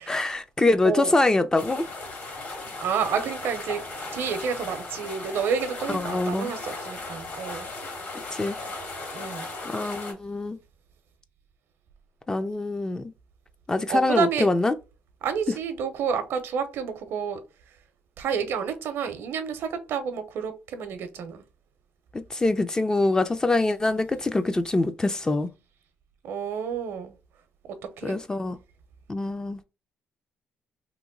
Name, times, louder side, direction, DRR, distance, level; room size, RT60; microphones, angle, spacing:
voice 1, 0.1-1.9 5.9-6.5 8.3-8.6 9.7-10.6 12.3-13.1 13.7-14.8 22.1-25.5 28.0-28.6 29.1-29.6, left 2 dB, 15° left, 0.4 m, -24 dB
sound 1, 1.5-10.1, left 3 dB, 55° left, 1.6 m, -37 dB
voice 2, 2.8-3.8 4.1-7.7 9.1-9.5 13.9-14.5 15.2-17.4 18.2-21.4 26.2-27.1 27.7-28.2, right 6 dB, 75° right, 0.6 m, -29 dB
2.9 x 2.2 x 3.7 m
cardioid pair, 100°, 4 cm